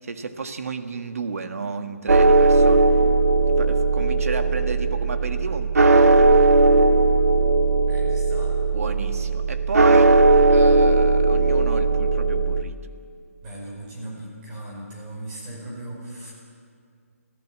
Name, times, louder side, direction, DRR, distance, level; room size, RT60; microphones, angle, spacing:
voice 1, 0.0-2.8 3.5-6.2 8.7-10.1 10.5-12.8, right 4 dB, 70° right, 7 dB, 1.7 m, -32 dB
sound 1, 2.1-12.6, right 3 dB, 85° right, 1.5 m, -18 dB
voice 2, 7.9-8.6 13.4-16.3, right 1 dB, 15° right, -3 dB, 4.9 m, -38 dB
27.0 x 15.0 x 7.6 m, 2.2 s
hypercardioid pair, 170°, 8 cm